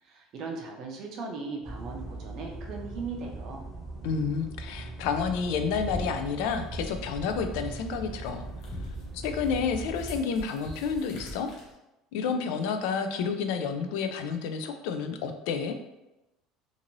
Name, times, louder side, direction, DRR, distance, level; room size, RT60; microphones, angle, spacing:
voice 1, 0.0-3.7, right 4 dB, 40° right, 1 dB, 0.5 m, -38 dB
sound 1, 1.6-10.2, right 2 dB, 5° left, 1.0 m, -40 dB
voice 2, 4.0-8.5 9.1-11.5 12.1-15.8, left 6 dB, 65° left, 7 dB, 0.3 m, -30 dB
sound 2, 5.3-11.7, equal, 40° left, 0.7 m, -43 dB
2.6 x 2.5 x 2.9 m, 0.94 s
cardioid pair, 175°, 0 cm